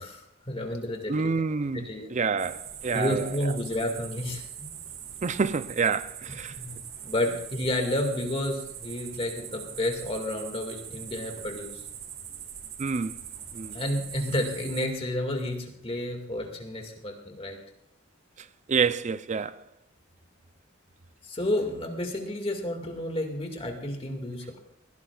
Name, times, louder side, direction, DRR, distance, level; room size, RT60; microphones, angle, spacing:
voice 1, 0.0-1.1 1.7-2.1 2.9-4.7 6.3-11.9 13.7-17.6 21.2-24.6, left 1 dB, 30° left, 2.0 m, -31 dB
voice 2, 1.1-3.3 5.2-6.6 12.8-13.2 13.5-13.8 18.7-19.6, right 5 dB, 35° right, 0.5 m, -28 dB
sound 1, 2.4-14.9, right 8 dB, 70° right, 1.7 m, -42 dB
20.5 x 16.5 x 2.4 m
head